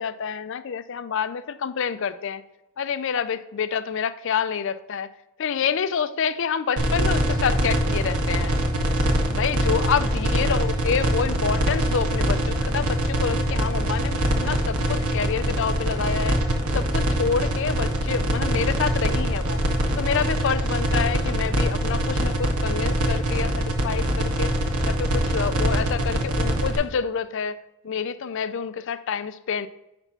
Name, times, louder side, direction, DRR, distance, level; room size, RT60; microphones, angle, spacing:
voice 1, 0.0-2.4 2.8-5.1 5.4-8.6 9.3-16.4 16.7-19.6 20.0-24.5 24.8-27.6 27.8-29.7, left 6 dB, 60° left, 13 dB, 0.4 m, -27 dB
sound 1, 6.8-26.8, right 1 dB, 85° right, 1.2 m, -23 dB
9.8 x 3.5 x 5.8 m, 0.92 s
head